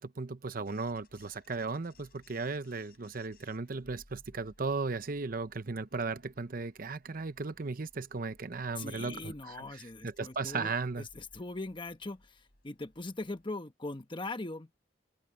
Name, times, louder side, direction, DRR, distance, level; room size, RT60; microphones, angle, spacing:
voice 1, 0.0-9.3 10.0-11.0, right 4 dB, 50° right, 0.7 m, -36 dB
sound 1, 0.6-13.5, left 2 dB, 55° left, 7.7 m, -63 dB
voice 2, 8.8-14.7, left 2 dB, 25° left, 1.2 m, -41 dB
open air
head